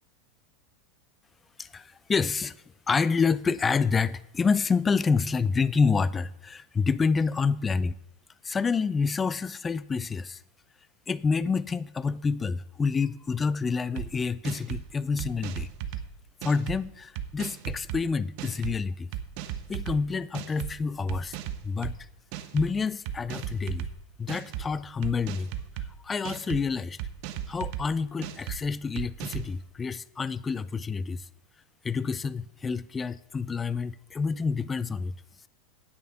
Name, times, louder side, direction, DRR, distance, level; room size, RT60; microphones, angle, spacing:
voice 1, 1.6-2.6 2.9-7.9 8.4-10.4 11.1-15.7 16.4-19.1 19.7-21.4 21.6-22.0 22.5-23.9 24.2-25.5 26.0-27.0 27.5-31.3 31.8-35.1, left 5 dB, 15° left, 0.4 m, -28 dB
sound 1, 14.0-14.1 14.4-14.8 15.2-16.0 16.4-16.8 17.2-18.0 18.4-18.7 19.1-20.0 20.3-20.7 21.1-21.9 22.3-22.7 23.1-23.9 24.3-24.6 25.0-25.9 26.2-26.6 27.0-27.8 28.2-28.6 29.0-29.5, right 11 dB, 55° right, 0.9 m, -35 dB
9.5 x 8.8 x 5.8 m
supercardioid pair, 135°, 0 cm